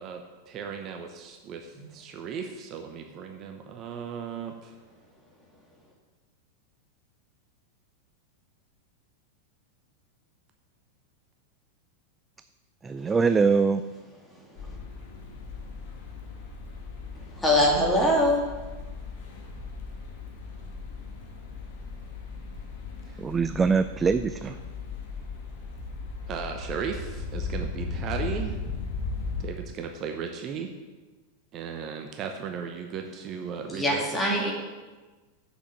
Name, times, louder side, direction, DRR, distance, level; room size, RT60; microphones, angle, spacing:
voice 1, 0.0-4.7 23.1-23.2 24.4-24.5 26.3-28.6 29.4-30.7 31.5-34.5, right 6 dB, 35° right, 5 dB, 0.9 m, -36 dB
voice 2, 12.8-13.8 23.2-24.5, right 5 dB, 15° right, 11 dB, 0.3 m, -23 dB
sound 1, 14.6-29.5, left 4 dB, 50° left, 1.9 m, -37 dB
voice 3, 17.4-18.4 33.7-34.5, left 1 dB, 5° left, -3 dB, 2.8 m, -22 dB
7.4 x 6.9 x 7.8 m, 1.3 s
figure-of-eight pair, 90°, 0 cm